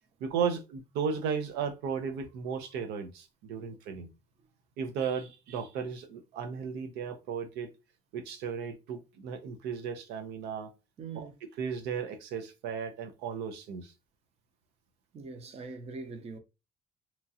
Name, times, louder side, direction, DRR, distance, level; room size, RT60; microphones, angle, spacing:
voice 1, 0.2-4.1 4.8-7.7 8.1-10.7 11.1-11.3 11.6-13.9, right 6 dB, 90° right, 0.6 m, -35 dB
voice 2, 11.0-11.3 15.1-16.4, right 4 dB, 35° right, 0.7 m, -42 dB
2.9 x 2.4 x 2.7 m
cardioid pair, 110°, 17 cm